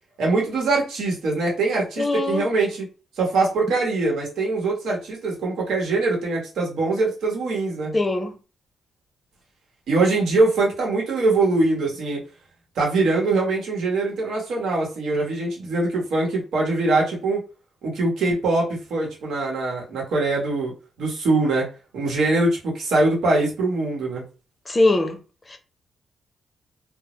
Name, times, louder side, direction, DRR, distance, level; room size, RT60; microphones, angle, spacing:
voice 1, 0.2-2.9 3.2-8.0 9.9-12.2 12.8-17.4 17.8-21.7 21.9-24.2, right 3 dB, 80° right, 0.9 m, -22 dB
voice 2, 2.0-2.4 7.9-8.4 24.7-25.2 25.5-25.6, left 2 dB, 30° left, 0.6 m, -21 dB
2.0 x 2.0 x 2.9 m
supercardioid pair, 55°, 0 cm